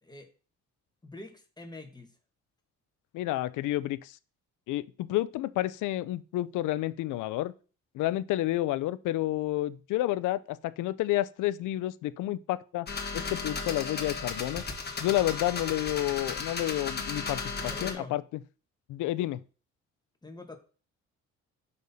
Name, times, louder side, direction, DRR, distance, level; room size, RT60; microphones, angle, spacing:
voice 1, 1.0-2.2 17.6-18.1 20.2-20.6, left 2 dB, 15° left, 1.2 m, -45 dB
voice 2, 3.1-4.2 4.7-7.5 7.9-12.9 13.1-14.6 15.0-18.2 18.9-19.4, left 15 dB, 80° left, 0.5 m, -30 dB
sound 1, 12.9-17.9, left 4 dB, 35° left, 1.2 m, -35 dB
6.4 x 5.3 x 2.7 m
cardioid pair, 90°, 30 cm